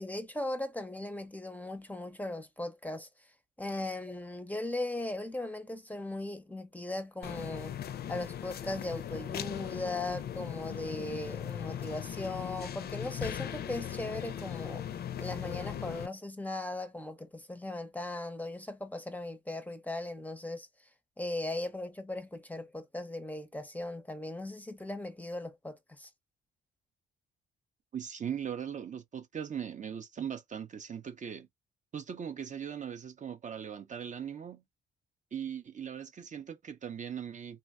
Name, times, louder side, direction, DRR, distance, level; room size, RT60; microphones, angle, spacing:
voice 1, 0.0-3.1 3.6-7.8 8.1-14.9 15.2-20.7 21.2-26.1, left 2 dB, 10° left, 0.6 m, -38 dB
sound 1, 7.2-16.1, left 10 dB, 50° left, 0.4 m, -39 dB
voice 2, 27.9-31.5 31.9-34.6 35.3-37.6, right 8 dB, 40° right, 0.5 m, -39 dB
3.4 x 2.1 x 2.4 m
cardioid pair, 90°, 20 cm